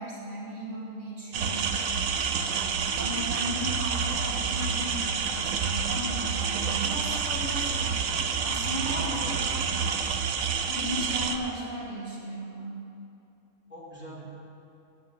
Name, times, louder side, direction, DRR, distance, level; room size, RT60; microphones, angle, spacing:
voice 1, 0.0-1.7 2.4-8.0 8.4-9.8 10.7-12.8, equal, 60° right, -6 dB, 2.9 m, -36 dB
sound 1, 1.3-11.4, right 6 dB, 85° right, 1.2 m, -28 dB
voice 2, 8.7-9.4 13.7-14.2, left 1 dB, 10° right, -8 dB, 3.3 m, -40 dB
10.5 x 9.0 x 7.6 m, 2.7 s
omnidirectional pair, 1.4 m